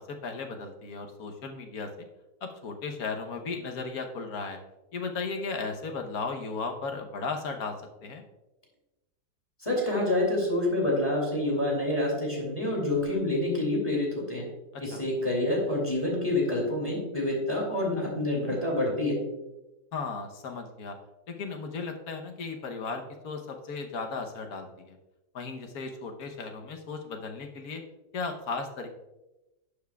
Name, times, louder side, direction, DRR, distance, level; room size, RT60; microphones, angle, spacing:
voice 1, 0.0-2.1 2.4-4.6 4.9-8.2 14.7-15.0 19.9-21.0 21.3-25.0 25.3-27.8 28.1-28.9, left 4 dB, 65° left, 4 dB, 1.4 m, -36 dB
voice 2, 9.6-14.5 14.8-19.2, left 1 dB, 20° left, -2 dB, 2.2 m, -27 dB
11.5 x 7.2 x 2.3 m, 1.0 s
omnidirectional pair, 1.8 m